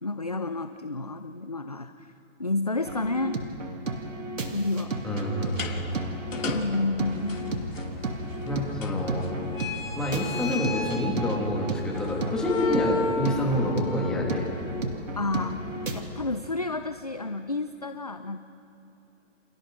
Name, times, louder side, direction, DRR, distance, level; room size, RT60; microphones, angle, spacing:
voice 1, 0.0-2.1 2.4-3.4 4.5-5.0 6.5-7.5 15.2-18.4, left 2 dB, 35° left, 9 dB, 0.4 m, -30 dB
sound 1, 2.9-16.0, right 2 dB, 85° right, 2.7 m, -34 dB
voice 2, 5.0-6.0 8.4-9.3 9.9-14.4, left 1 dB, ahead, -3 dB, 1.8 m, -27 dB
sound 2, 5.5-16.4, left 3 dB, 90° left, 2.8 m, -35 dB
29.5 x 27.5 x 3.7 m, 2.9 s
hypercardioid pair, 165°, 38 cm